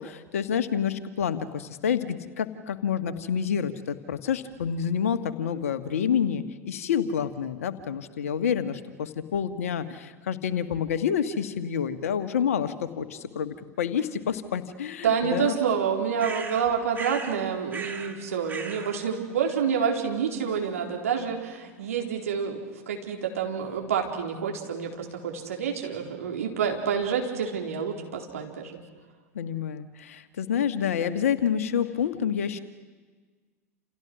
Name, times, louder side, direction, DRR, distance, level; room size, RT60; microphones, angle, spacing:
voice 1, 0.0-15.5 29.3-32.6, left 8 dB, 70° left, 10 dB, 1.7 m, -28 dB
voice 2, 15.0-28.7, right 7 dB, 70° right, 1 dB, 4.2 m, -28 dB
sound 1, 16.2-17.4 17.7-18.2 18.5-19.0, right 4 dB, 20° right, 3.0 m, -37 dB
29.0 x 29.0 x 6.2 m, 1.4 s
figure-of-eight pair, 80°, 8 cm